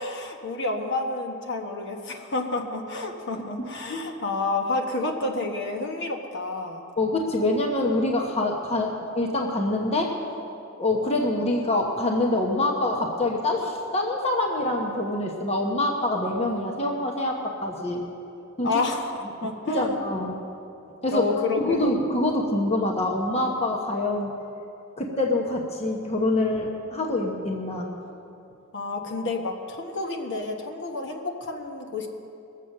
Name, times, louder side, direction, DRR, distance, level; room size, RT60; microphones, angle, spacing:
voice 1, 0.0-6.8 18.6-19.1 19.4-20.0 21.1-22.0 28.7-32.1, left 2 dB, 55° left, 3 dB, 1.2 m, -29 dB
voice 2, 7.0-10.2 10.8-18.1 18.6-18.7 19.4-20.5 21.0-21.3 21.6-24.3 25.0-27.9, left 2 dB, 30° left, 1 dB, 1.0 m, -25 dB
20.5 x 7.5 x 6.5 m, 2.7 s
head